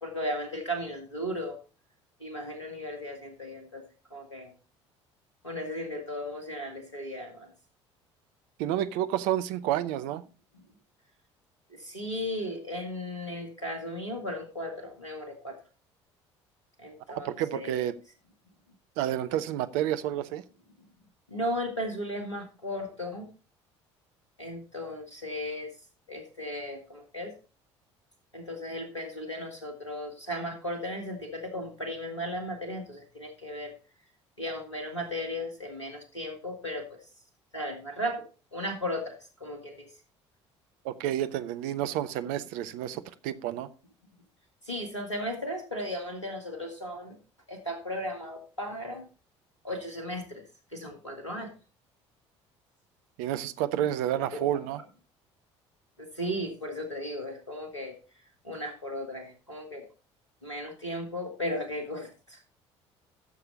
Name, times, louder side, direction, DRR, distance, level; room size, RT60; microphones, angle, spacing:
voice 1, 0.0-1.6 2.2-3.8 4.1-4.5 5.4-7.5 11.7-15.6 16.8-17.8 21.3-23.3 24.4-25.7 26.1-27.3 28.3-33.7 34.4-37.0 37.5-38.2 38.5-39.9 44.6-47.2 47.5-49.1 49.6-50.4 50.7-51.5 54.1-54.5 56.0-57.9 58.4-59.9 60.4-62.4, equal, 90° left, 1.9 m, -36 dB
voice 2, 8.6-10.2 17.2-17.9 19.0-20.4 40.8-43.7 53.2-54.8, right 12 dB, 60° right, 0.8 m, -30 dB
13.0 x 6.8 x 4.1 m
figure-of-eight pair, 55°, 15 cm